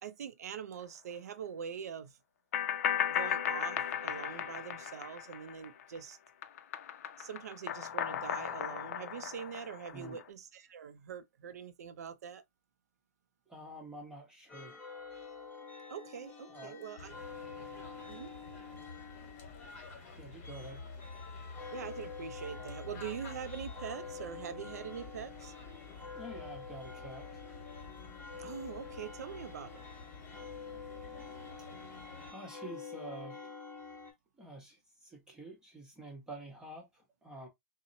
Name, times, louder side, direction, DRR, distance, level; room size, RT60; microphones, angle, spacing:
voice 1, 0.0-2.1 3.1-6.2 7.2-12.4 15.9-17.1 18.1-18.3 21.7-25.5 28.4-29.7, right 8 dB, 85° right, 0.4 m, -43 dB
sound 1, 2.5-6.0 6.3-10.2, left 9 dB, 70° left, 0.4 m, -36 dB
voice 2, 13.5-14.8 16.5-16.8 20.2-20.8 26.1-27.4 32.3-33.4 34.4-37.5, right 1 dB, 10° right, 0.8 m, -48 dB
sound 2, 14.5-34.1, left 5 dB, 20° left, 1.0 m, -48 dB
sound 3, 17.0-32.3, left 3 dB, 45° left, 1.2 m, -50 dB
2.7 x 2.0 x 2.6 m
hypercardioid pair, 135°, 8 cm